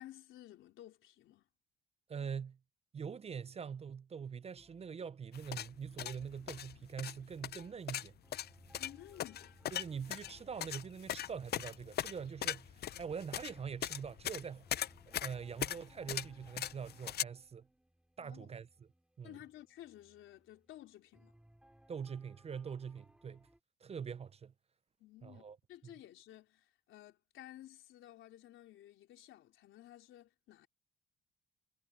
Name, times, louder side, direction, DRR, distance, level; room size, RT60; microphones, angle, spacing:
voice 1, 0.0-1.4 8.8-9.6 18.2-18.5 19.2-21.3 25.0-30.7, left 13 dB, 85° left, 3.6 m, -54 dB
voice 2, 2.1-2.6 2.9-8.2 9.7-14.7 15.1-17.7 18.2-18.9 19.2-19.4 21.9-23.5 23.8-24.5 25.2-25.6 25.8-25.9, right 6 dB, 30° right, 0.4 m, -44 dB
sound 1, 4.5-23.6, right 1 dB, 5° right, 3.4 m, -66 dB
sound 2, 5.3-17.2, left 11 dB, 55° left, 0.5 m, -40 dB
cardioid pair, 90°, 20 cm